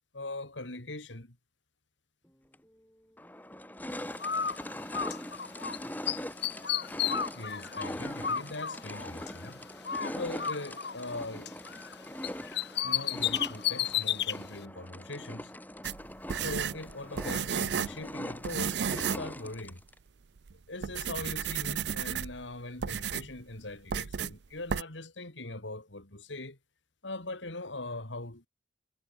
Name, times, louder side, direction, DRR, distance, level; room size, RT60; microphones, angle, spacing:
voice 1, 0.1-1.4 7.3-9.7 10.0-11.5 12.8-15.5 16.3-19.8 20.5-26.6 27.0-28.5, left 2 dB, 85° left, 3.7 m, -41 dB
sound 1, 2.5-2.6 3.2-20.0, left 1 dB, 10° left, 7.2 m, -42 dB
Bird, 4.2-5.8 6.1-9.5 9.8-11.9 12.2-14.4, left 9 dB, 65° left, 2.5 m, -33 dB
sound 2, 15.8-18.0 18.4-19.3 19.6-19.7 20.4-20.5 20.8-22.4 22.8-23.4 23.9-24.3 24.7-24.8, right 7 dB, 70° right, 0.5 m, -33 dB
head